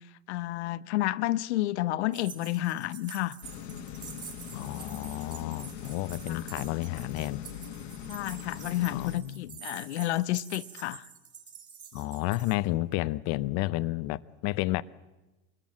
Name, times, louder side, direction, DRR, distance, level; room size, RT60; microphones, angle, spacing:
voice 1, 0.3-3.4 6.3-6.4 8.1-11.1, left 15 dB, 85° left, 0.8 m, -30 dB
sound 1, 2.1-12.5, right 7 dB, 35° right, 5.4 m, -47 dB
sound 2, 3.4-9.2, left 9 dB, 70° left, 1.7 m, -41 dB
voice 2, 4.5-7.4 8.9-9.6 11.9-14.8, left 18 dB, 50° left, 0.7 m, -31 dB
24.0 x 21.0 x 7.5 m
supercardioid pair, 120°, 33 cm